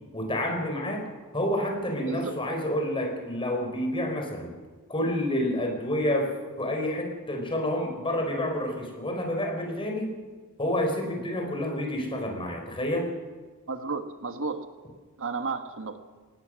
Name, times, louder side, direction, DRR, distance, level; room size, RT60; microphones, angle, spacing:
voice 1, 0.1-1.1 1.3-4.5 4.9-10.1 10.6-13.1, left 1 dB, 25° left, 2 dB, 4.2 m, -29 dB
voice 2, 2.0-2.5 13.7-14.7 15.2-16.0, right 4 dB, 60° right, 8 dB, 1.4 m, -33 dB
23.5 x 18.5 x 6.3 m, 1.4 s
head